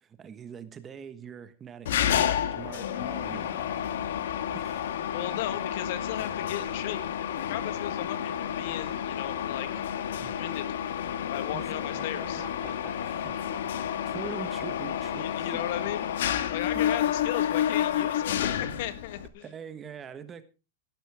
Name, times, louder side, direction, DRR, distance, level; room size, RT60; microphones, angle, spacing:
voice 1, 0.0-3.7 4.5-4.9 10.2-10.3 11.5-15.6 16.7-16.9 19.4-20.4, right 7 dB, 20° right, 1.3 m, -44 dB
Mechanisms, 1.9-19.3, left 10 dB, 75° left, 1.5 m, -30 dB
voice 2, 5.1-7.0 7.5-9.8 10.4-10.6 11.3-12.4 15.2-16.1 16.5-19.5, left 12 dB, 60° left, 1.5 m, -36 dB
17.5 x 12.0 x 3.6 m
supercardioid pair, 145°, 0 cm